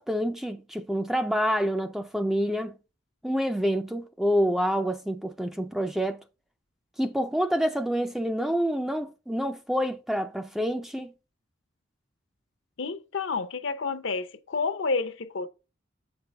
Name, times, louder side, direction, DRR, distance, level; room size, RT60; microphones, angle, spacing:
voice 1, 0.0-2.7 3.2-6.2 7.0-11.1, equal, ahead, 0.3 m, -27 dB
voice 2, 12.8-15.5, left 4 dB, 65° left, 0.6 m, -30 dB
7.6 x 5.2 x 3.3 m
head